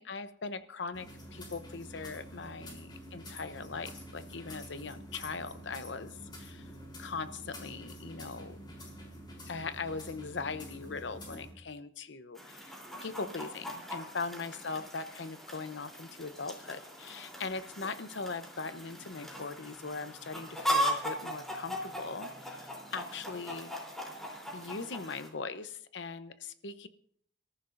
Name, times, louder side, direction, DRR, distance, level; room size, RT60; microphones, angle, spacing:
voice 1, 0.0-6.7 7.0-8.6 9.5-23.7 24.5-26.9, left 4 dB, 75° left, 11 dB, 0.8 m, -40 dB
sound 1, 0.9-11.5, equal, 25° left, 3.7 m, -47 dB
Chicken rooster, 12.4-25.3, equal, ahead, 3.4 m, -38 dB
28.0 x 14.0 x 2.6 m, 0.64 s
head